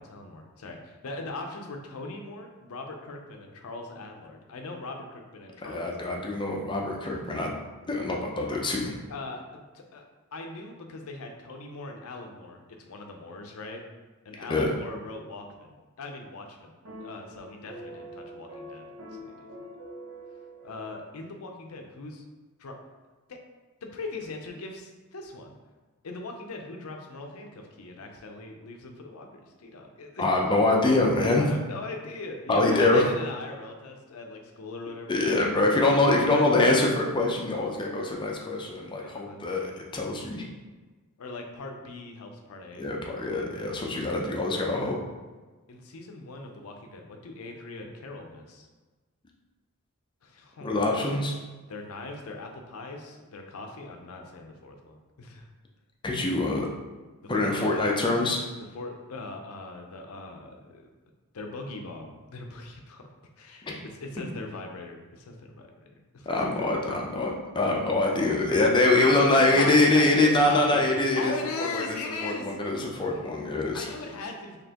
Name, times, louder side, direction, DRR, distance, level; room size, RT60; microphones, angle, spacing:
voice 1, 0.0-5.9 9.1-10.0 10.3-13.8 14.2-16.7 17.0-18.9 19.1-19.3 20.6-22.2 22.6-22.8 23.3-23.4 23.8-25.6 26.0-30.3 31.4-35.4 35.8-36.6 38.9-39.8 41.2-42.9 45.7-48.7 50.2-50.8 51.7-55.5 57.2-58.0 58.7-60.9 61.3-63.0 63.4-66.3 69.1-70.8 71.2-72.6 73.1-73.3 73.7-74.6, left 3 dB, 70° left, 3 dB, 0.5 m, -40 dB
voice 2, 5.6-7.5 7.9-8.9 14.5-14.7 30.2-31.5 32.5-33.0 35.1-40.4 42.8-45.0 50.6-51.3 56.0-56.7 57.3-58.4 63.6-63.8 64.2-64.3 66.3-71.9 72.2-73.9, left 2 dB, 20° left, 0 dB, 0.5 m, -24 dB
sound 1, 16.8-21.3, right 1 dB, 75° right, 0.9 m, -45 dB
4.1 x 2.9 x 2.9 m, 1.3 s
head